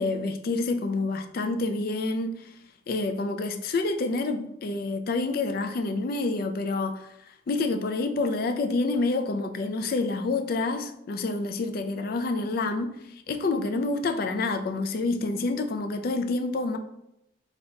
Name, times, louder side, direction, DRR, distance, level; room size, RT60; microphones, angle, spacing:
voice 1, 0.0-2.6 2.9-16.8, left 3 dB, 50° left, 0.3 m, -28 dB
2.9 x 2.8 x 4.2 m
head